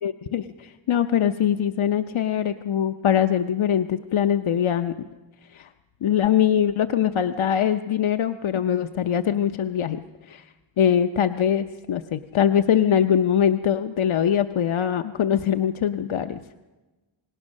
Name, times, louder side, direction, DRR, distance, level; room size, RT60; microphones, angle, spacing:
voice 1, 0.0-4.9 5.5-5.7 6.0-10.5 10.8-16.4, left 9 dB, 80° left, 8 dB, 0.7 m, -22 dB
27.5 x 19.0 x 6.4 m, 1.2 s
wide cardioid pair, 85°, 47 cm